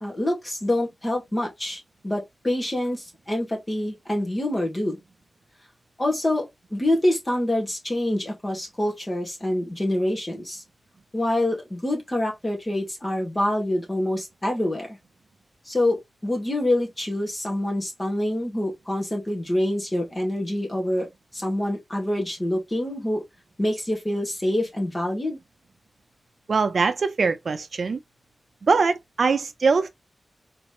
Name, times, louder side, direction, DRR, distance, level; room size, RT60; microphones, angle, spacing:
voice 1, 0.0-5.0 6.0-10.6 11.1-15.0 15.7-21.1 21.3-23.2 23.6-25.4, left 1 dB, 20° left, 1.9 m, -26 dB
voice 2, 26.5-28.0 28.6-29.9, right 4 dB, 60° right, 0.6 m, -22 dB
3.9 x 3.5 x 3.1 m
wide cardioid pair, 150°, 0 cm